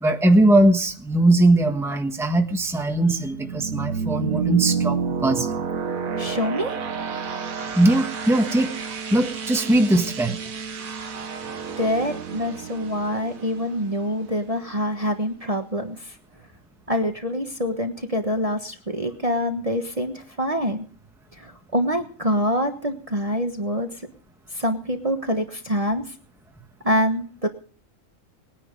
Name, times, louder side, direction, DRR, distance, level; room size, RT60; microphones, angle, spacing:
voice 1, 0.0-5.5 7.7-8.7 9.1-10.4, right 1 dB, ahead, 4 dB, 1.3 m, -20 dB
sound 1, 2.3-14.9, right 5 dB, 85° right, 1.7 m, -30 dB
voice 2, 6.2-6.7 11.8-16.1 16.9-20.9 21.4-23.9 24.5-26.0 26.8-27.5, equal, 25° right, 5 dB, 1.3 m, -25 dB
20.5 x 10.0 x 5.2 m, 0.43 s
omnidirectional pair, 1.4 m